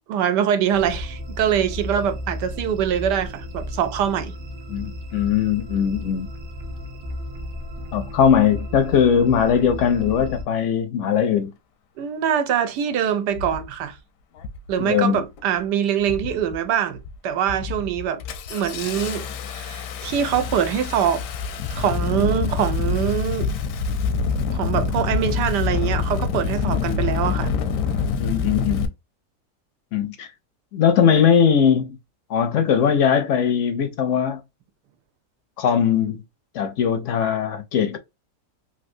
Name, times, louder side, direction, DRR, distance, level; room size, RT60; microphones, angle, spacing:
voice 1, 0.1-4.3 12.0-14.0 14.7-18.2 18.5-21.2 21.7-23.5 24.5-27.5, right 9 dB, 90° right, 1.3 m, -23 dB
sound 1, 0.7-10.4, left 1 dB, 50° right, 1.1 m, -34 dB
voice 2, 4.7-6.3 7.9-11.5 14.8-15.2 26.6-26.8 28.2-28.9 29.9-30.3 30.7-32.0 32.3-34.4 35.6-36.2 36.5-38.0, left 8 dB, 65° left, 0.7 m, -20 dB
Engine starting, 12.5-12.6 13.3-13.7 14.4-14.7 15.0-15.6 16.0-16.6 16.9-17.1 17.5-28.9, left 5 dB, 85° left, 1.2 m, -26 dB
3.3 x 2.7 x 2.6 m
omnidirectional pair, 1.8 m